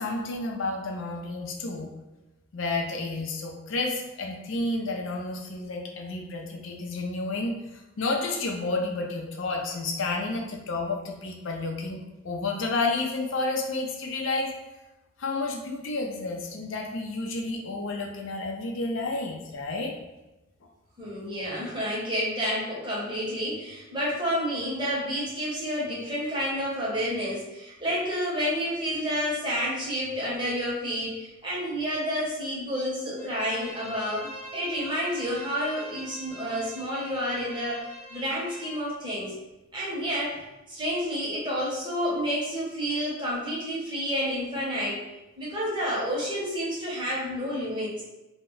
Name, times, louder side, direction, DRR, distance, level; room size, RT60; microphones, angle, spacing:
voice 1, 0.0-1.9 2.5-12.0 12.2-14.5 15.2-20.0, left 3 dB, 75° left, 1 dB, 0.5 m, -31 dB
voice 2, 21.0-34.3 34.5-39.3 39.7-40.4 40.7-45.0 45.4-48.0, equal, 25° right, -6 dB, 0.7 m, -30 dB
Bowed string instrument, 33.2-38.8, right 1 dB, 15° left, 0.7 m, -44 dB
2.1 x 2.1 x 3.7 m, 1.0 s
head